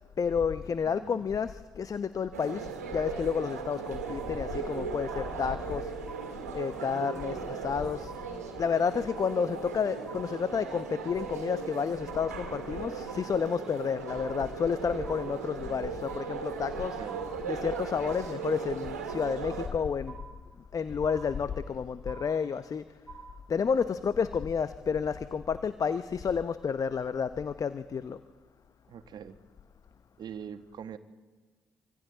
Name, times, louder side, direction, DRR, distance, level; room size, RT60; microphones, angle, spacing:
voice 1, 0.2-5.9 6.5-8.1 8.6-17.0 17.5-20.2 20.7-22.8 23.5-28.2, left 6 dB, 45° left, 13 dB, 0.8 m, -30 dB
voice 2, 0.8-1.3 17.0-17.2 28.9-29.4 30.2-31.0, right 8 dB, 60° right, 10 dB, 1.2 m, -43 dB
sound 1, 2.3-19.7, right 5 dB, 90° right, 1.7 m, -38 dB
sound 2, 4.1-4.7 5.1-5.7 6.1-6.7 7.1-7.7 8.1-8.7 9.1-9.7 10.1-10.7 11.1-11.7 12.1-12.7 13.1-13.7 14.1-14.7 15.1-15.7 16.1-16.7 17.1-17.7 18.1-18.7 19.1-19.7 20.1-20.7 21.1-21.7 22.1-22.7 23.1-23.7, right 5 dB, 10° right, 2.9 m, -49 dB
26.0 x 25.5 x 4.0 m, 1.3 s
hypercardioid pair, 40°, 8 cm